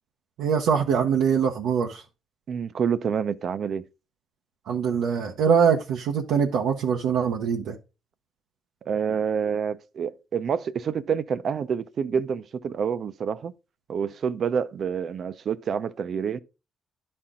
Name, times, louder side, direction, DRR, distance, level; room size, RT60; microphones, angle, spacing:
voice 1, 0.4-2.0 4.7-7.8, right 7 dB, 85° right, 0.8 m, -23 dB
voice 2, 2.5-3.8 8.9-13.5 13.9-16.4, right 7 dB, 55° right, 0.6 m, -27 dB
11.0 x 4.4 x 3.7 m
cardioid pair, 90°, 0 cm